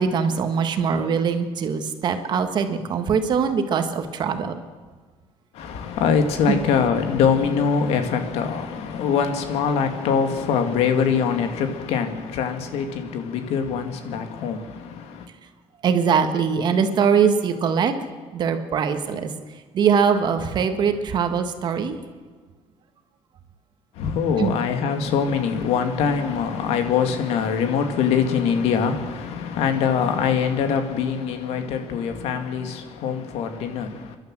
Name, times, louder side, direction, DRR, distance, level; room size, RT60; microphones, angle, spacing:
voice 1, 0.0-4.6 6.5-6.6 15.8-17.9 18.3-19.3 19.7-22.0 24.4-24.6, right 6 dB, 45° right, 7 dB, 1.6 m, -22 dB
voice 2, 5.6-14.6 24.0-33.9, left 6 dB, 85° left, 7 dB, 2.2 m, -23 dB
29.5 x 11.5 x 7.6 m, 1.5 s
cardioid pair, 160°, 10 cm